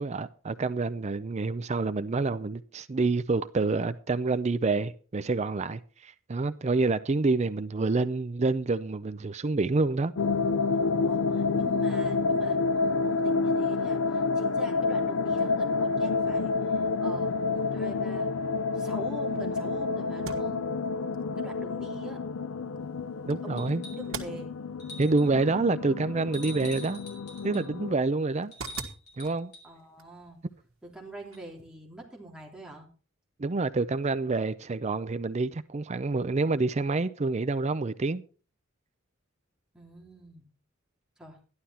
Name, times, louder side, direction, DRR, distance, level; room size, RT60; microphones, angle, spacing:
voice 1, 0.0-10.1 23.3-23.8 25.0-27.0 27.4-28.5 29.2-29.5 33.4-38.2, right 3 dB, 35° right, 0.5 m, -27 dB
sound 1, 10.2-27.9, left 4 dB, 80° left, 0.5 m, -29 dB
voice 2, 11.0-16.5 17.0-20.6 21.4-22.2 23.4-24.5 29.6-30.4 30.8-32.9 39.7-40.5 41.2-41.4, right 1 dB, 5° right, 3.2 m, -44 dB
sound 2, 20.1-31.7, right 5 dB, 80° right, 1.7 m, -47 dB
sound 3, 23.6-24.2 24.8-25.4 26.3-27.7 28.5-29.7 31.3-31.4, left 1 dB, 55° left, 4.9 m, -45 dB
13.0 x 11.5 x 4.3 m
head